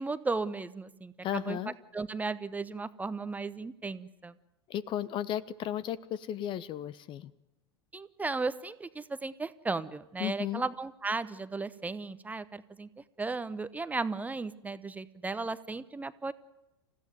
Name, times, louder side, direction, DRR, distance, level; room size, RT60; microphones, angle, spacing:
voice 1, 0.0-1.6 1.9-4.3 7.9-12.9 13.2-16.3, right 3 dB, 10° right, 13 dB, 0.9 m, -35 dB
voice 2, 1.2-1.7 4.7-7.3 10.2-10.6, left 11 dB, 35° left, 19 dB, 1.0 m, -34 dB
28.0 x 15.5 x 9.4 m, 0.96 s
figure-of-eight pair, 85°, 14 cm